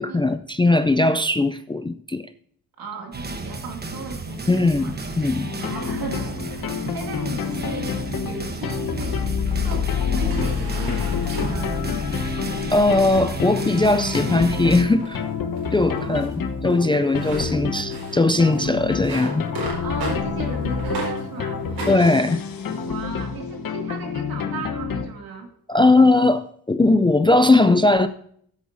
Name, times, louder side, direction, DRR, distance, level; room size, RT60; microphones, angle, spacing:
voice 1, 0.0-2.3 4.5-5.5 12.7-15.2 15.7-16.3 16.6-19.5 21.9-22.4 25.7-28.1, left 2 dB, 15° left, 10 dB, 0.3 m, -19 dB
voice 2, 2.8-5.0 5.6-11.8 15.9-16.3 19.8-21.6 22.9-25.5, right 4 dB, 70° right, 2 dB, 2.4 m, -36 dB
sound 1, 3.1-14.8, right 3 dB, 25° right, 1.0 m, -33 dB
sound 2, 5.4-25.1, left 6 dB, 60° left, 1.2 m, -28 dB
sound 3, 8.3-9.1 9.4-12.4 12.9-13.3 13.8-14.2 14.5-14.7 15.0-21.2 21.6-22.8, right 1 dB, 90° right, 4.7 m, -36 dB
15.0 x 8.3 x 2.6 m, 0.63 s
wide cardioid pair, 140°, 37 cm